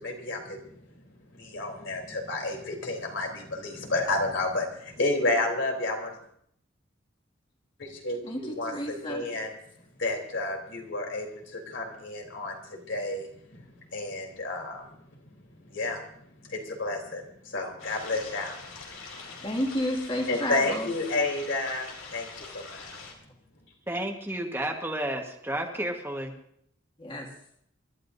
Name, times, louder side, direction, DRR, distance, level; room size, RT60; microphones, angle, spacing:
voice 1, 0.0-6.2 7.8-9.5 10.0-15.3 15.6-16.0 16.4-18.8 19.3-19.4 20.3-22.9, left 2 dB, 70° left, 0 dB, 3.4 m, -31 dB
voice 2, 8.2-9.3 19.4-20.9 27.0-27.3, equal, 25° left, 0 dB, 2.1 m, -31 dB
sound 1, 17.8-23.1, left 4 dB, 90° left, 3.2 m, -44 dB
voice 3, 23.9-26.3, right 1 dB, 10° right, 1 dB, 1.3 m, -31 dB
28.5 x 12.5 x 2.6 m, 0.70 s
head